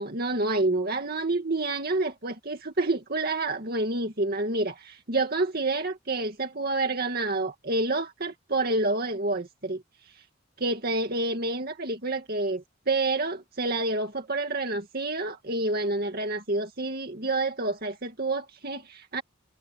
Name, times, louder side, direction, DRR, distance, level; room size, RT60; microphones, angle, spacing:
voice 1, 0.0-9.8 10.6-19.2, right 2 dB, 50° right, 2.3 m, -28 dB
head